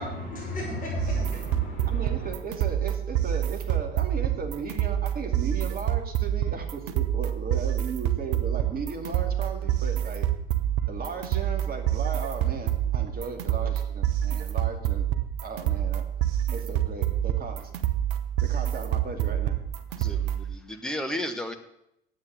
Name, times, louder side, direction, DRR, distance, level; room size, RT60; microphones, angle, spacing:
voice 1, 0.0-2.3, left 2 dB, 25° left, -6 dB, 5.5 m, -34 dB
sound 1, 1.0-20.5, right 11 dB, 60° right, 1.0 m, -27 dB
voice 2, 1.9-10.3 10.9-15.1 15.4-16.1 16.5-17.7 18.5-19.5, right 5 dB, 30° right, 3 dB, 2.4 m, -36 dB
voice 3, 20.0-21.5, left 1 dB, ahead, 4 dB, 1.3 m, -33 dB
10.0 x 8.0 x 7.9 m, 0.79 s
figure-of-eight pair, 65°, 29 cm